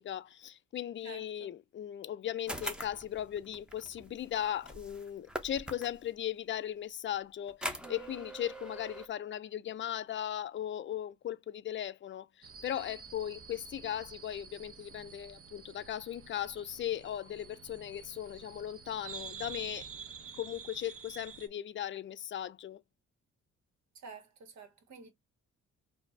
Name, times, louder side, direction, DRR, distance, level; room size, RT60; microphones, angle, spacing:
voice 1, 0.0-19.9 20.4-22.8, left 10 dB, 40° left, 0.5 m, -38 dB
voice 2, 1.0-1.5 23.9-25.1, right 4 dB, 65° right, 1.7 m, -50 dB
sound 1, 2.5-6.1 7.5-9.1, equal, 5° right, 0.9 m, -43 dB
sound 2, 12.4-21.5, right 6 dB, 50° right, 0.8 m, -49 dB
4.5 x 2.8 x 2.6 m
cardioid pair, 90°, 30 cm